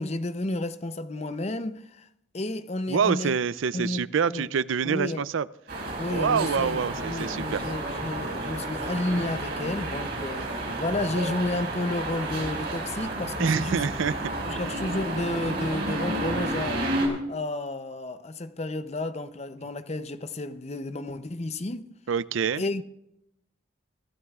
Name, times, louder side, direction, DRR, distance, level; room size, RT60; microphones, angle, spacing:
voice 1, 0.0-2.1 2.3-3.4 3.7-4.5 4.8-5.2 6.0-13.9 14.4-21.8 22.6-22.8, left 2 dB, 35° left, 0.6 m, -32 dB
voice 2, 2.9-5.5 6.1-7.6 13.4-14.2 22.1-22.6, right 6 dB, 75° right, 0.4 m, -26 dB
sound 1, 5.7-17.1, right 2 dB, 55° right, 5.5 m, -31 dB
25.0 x 14.5 x 2.4 m
head